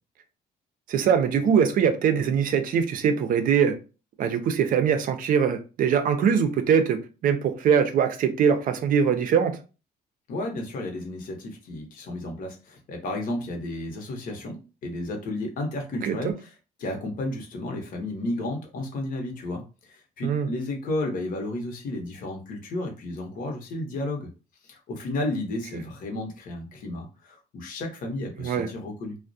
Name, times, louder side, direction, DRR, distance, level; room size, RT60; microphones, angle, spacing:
voice 1, 0.9-3.8 4.2-9.6 16.0-16.3 20.2-20.5 28.4-28.7, right 7 dB, 55° right, 0.5 m, -22 dB
voice 2, 10.3-24.3 24.6-29.2, left 1 dB, 55° left, 0.8 m, -33 dB
2.3 x 2.1 x 2.6 m
cardioid pair, 110°, 17 cm